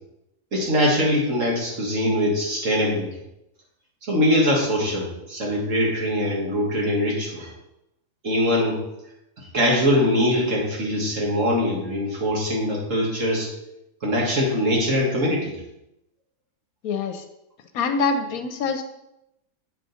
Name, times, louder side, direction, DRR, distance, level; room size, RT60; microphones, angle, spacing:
voice 1, 0.5-3.1 4.1-7.5 8.2-8.8 9.5-13.5 14.0-15.6, equal, 55° right, -3 dB, 2.1 m, -22 dB
voice 2, 16.8-17.2 17.7-18.8, left 4 dB, 75° left, 8 dB, 1.1 m, -25 dB
7.5 x 4.9 x 4.0 m, 0.86 s
omnidirectional pair, 1.6 m